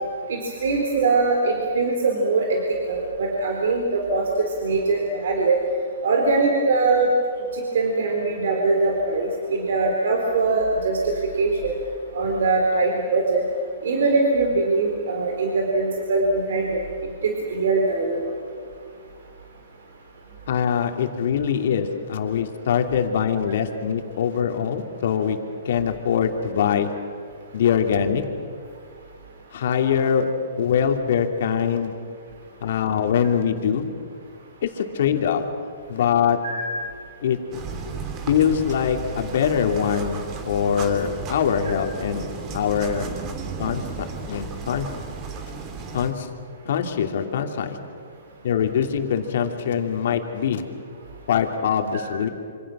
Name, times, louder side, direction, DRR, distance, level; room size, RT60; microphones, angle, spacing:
voice 1, 0.3-2.6 2.9-4.2 4.6-5.6 6.0-7.1 7.5-11.7 12.1-13.4 13.8-16.8 17.2-18.3 36.4-36.6 51.9-52.1, right 3 dB, 75° right, 1 dB, 4.1 m, -22 dB
voice 2, 20.5-25.4 25.6-26.9 27.5-28.2 29.5-30.3 30.6-31.9 32.6-33.9 34.6-35.4 35.9-36.4 37.2-37.4 38.3-42.3 42.5-43.1 43.6-44.8 45.9-46.3 46.6-47.8 48.4-50.6 51.3-52.3, left 8 dB, 60° left, 5 dB, 2.9 m, -23 dB
sound 1, 37.5-46.1, right 4 dB, 25° right, 2.8 m, -34 dB
27.0 x 27.0 x 6.3 m, 2.2 s
hypercardioid pair, 150°, 0 cm